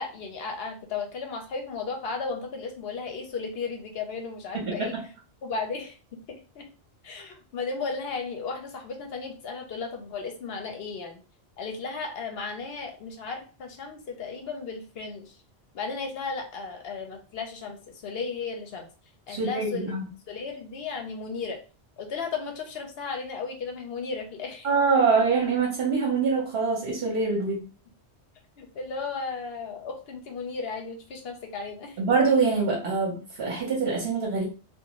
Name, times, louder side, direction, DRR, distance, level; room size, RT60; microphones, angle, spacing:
voice 1, 0.0-4.9 5.4-6.0 6.5-6.7 7.0-11.2 11.6-15.4 15.7-18.9 19.3-19.9 20.3-21.6 22.0-24.7 28.6-32.0, left 4 dB, 65° left, 3 dB, 0.8 m, -35 dB
voice 2, 4.6-5.0 19.3-20.0 24.6-27.7 32.0-34.4, right 4 dB, 60° right, -3 dB, 1.0 m, -24 dB
2.5 x 2.3 x 2.9 m, 0.36 s
omnidirectional pair, 1.1 m